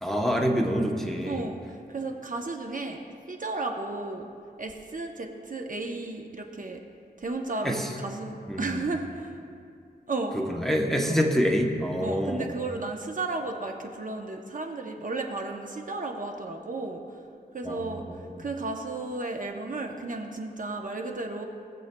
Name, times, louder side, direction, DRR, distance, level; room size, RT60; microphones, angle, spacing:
voice 1, 0.0-1.4 7.6-7.8 8.5-8.7 10.3-12.5 17.6-17.9, equal, ahead, 0 dB, 0.9 m, -26 dB
voice 2, 1.3-3.0 3.3-4.3 4.6-6.8 7.2-9.4 10.1-10.3 11.0-11.2 12.0-17.2 17.5-21.5, right 3 dB, 50° right, 3 dB, 0.8 m, -34 dB
18.0 x 7.9 x 2.2 m, 2.4 s
wide cardioid pair, 85°, 17 cm